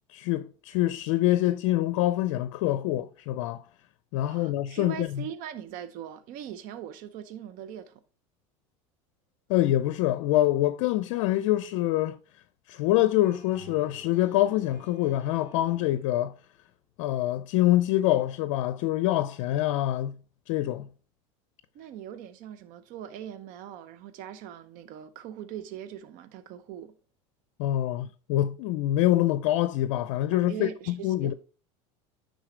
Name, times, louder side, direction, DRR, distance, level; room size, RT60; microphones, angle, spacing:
voice 1, 0.1-3.6 4.1-5.2 9.5-12.2 12.7-16.3 17.0-20.2 20.5-20.9 27.6-31.3, left 14 dB, 70° left, 0.5 m, -25 dB
voice 2, 4.2-8.0 21.7-26.9 30.3-31.3, right 10 dB, 60° right, 0.7 m, -41 dB
sound 1, 13.2-16.4, right 2 dB, 15° right, 2.5 m, -52 dB
9.7 x 3.9 x 3.2 m
hypercardioid pair, 90°, 16 cm